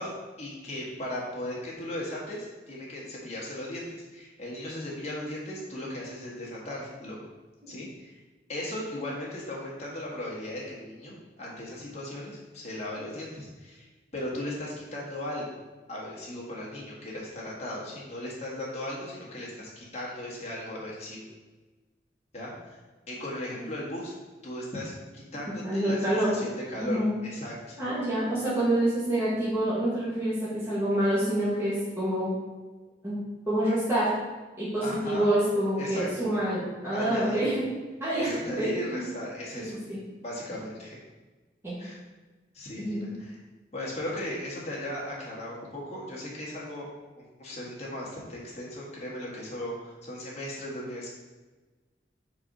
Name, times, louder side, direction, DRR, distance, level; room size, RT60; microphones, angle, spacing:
voice 1, 0.0-7.2 7.7-8.1 8.5-13.9 14.1-15.4 15.9-21.2 22.3-22.8 23.1-24.1 24.4-27.8 34.8-35.3 35.8-36.3 36.9-37.4 38.2-39.8 40.2-41.0 41.8-42.0 42.5-43.3 43.7-46.9 47.4-51.1, left 1 dB, 35° left, -5 dB, 1.6 m, -37 dB
voice 2, 25.6-26.3 26.8-27.1 27.8-32.3 33.0-34.1 34.6-37.6 38.0-39.0 39.6-40.0 41.6-41.8 42.8-43.0, right 1 dB, 15° right, -10 dB, 1.5 m, -27 dB
4.8 x 4.2 x 5.0 m, 1.2 s
head